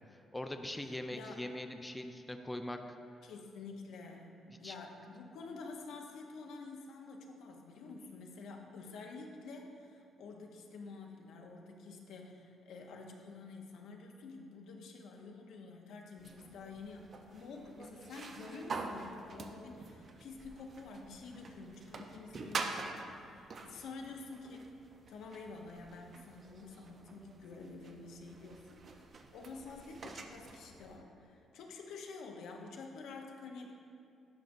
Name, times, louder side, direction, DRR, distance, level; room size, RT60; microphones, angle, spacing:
voice 1, 0.3-3.0 4.6-4.7, left 1 dB, 10° left, 5 dB, 0.4 m, -41 dB
voice 2, 1.1-1.4 3.2-4.3 4.6-24.8 25.1-33.9, left 3 dB, 80° left, 2 dB, 0.7 m, -49 dB
sound 1, 16.2-31.0, right 3 dB, 45° right, 0.5 m, -46 dB
10.5 x 5.1 x 2.6 m, 2.5 s
cardioid pair, 90°, 0 cm